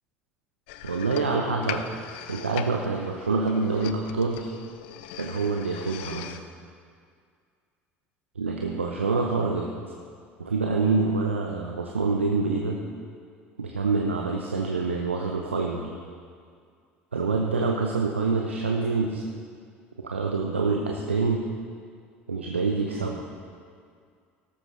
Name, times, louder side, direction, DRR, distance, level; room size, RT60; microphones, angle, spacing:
sound 1, 0.7-6.4, left 10 dB, 70° left, 0.5 m, -40 dB
voice 1, 0.8-2.0 2.3-4.5 5.1-6.4 8.4-9.7 10.4-12.8 13.6-15.9 17.1-19.2 20.0-21.4 22.3-23.2, right 4 dB, 90° right, 1 dB, 0.7 m, -26 dB
13.0 x 12.5 x 3.3 m, 2.2 s
figure-of-eight pair, 65°, 6 cm